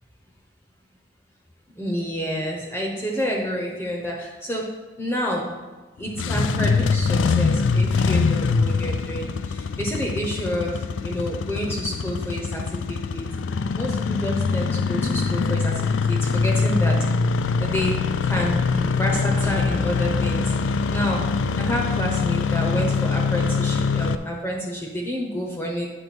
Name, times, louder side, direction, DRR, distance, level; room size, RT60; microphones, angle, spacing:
voice 1, 1.8-4.7 5.0-5.5 6.0-13.3 13.7-17.0 17.6-18.0 18.2-20.5 20.9-21.2 21.6-25.9, equal, 10° left, -1 dB, 0.8 m, -29 dB
Engine starting, 6.0-24.2, left 4 dB, 85° left, 0.4 m, -23 dB
8.7 x 3.3 x 6.1 m, 1.3 s
head